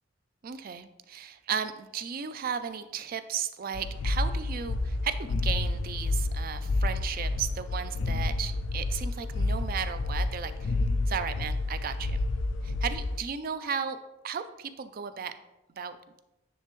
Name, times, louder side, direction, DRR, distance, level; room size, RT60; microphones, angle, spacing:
voice 1, 0.4-10.8 11.1-12.2 12.6-14.0 14.2-15.3 15.7-16.0, right 7 dB, 50° right, 11 dB, 0.4 m, -35 dB
sound 1, 3.7-13.2, left 2 dB, 75° left, 0.4 m, -30 dB
9.9 x 3.3 x 3.1 m, 0.94 s
head